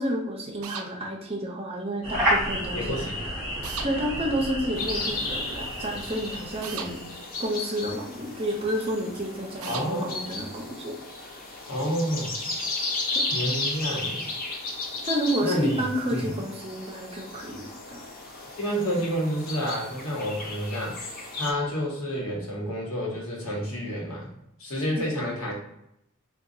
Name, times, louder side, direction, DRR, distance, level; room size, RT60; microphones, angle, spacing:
voice 1, 0.0-3.1 3.8-7.0 7.4-10.9 13.1-13.2 15.0-18.0 25.0-25.1, right 1 dB, 30° right, 0 dB, 0.6 m, -30 dB
sound 1, 0.6-0.9 3.6-3.9 6.6-6.9 9.6-9.9, right 7 dB, 80° right, 0.4 m, -35 dB
sound 2, 2.0-7.4, equal, 10° right, 1.3 m, -31 dB
voice 2, 2.7-3.3 9.7-10.2 11.7-12.3 13.3-14.2 15.4-15.8 16.1-16.3 18.6-21.0 21.3-24.3 24.6-25.5, equal, 80° left, -2 dB, 1.1 m, -29 dB
sound 3, 4.8-21.5, left 2 dB, 45° left, 0.6 m, -35 dB
3.9 x 2.2 x 2.6 m, 0.79 s
head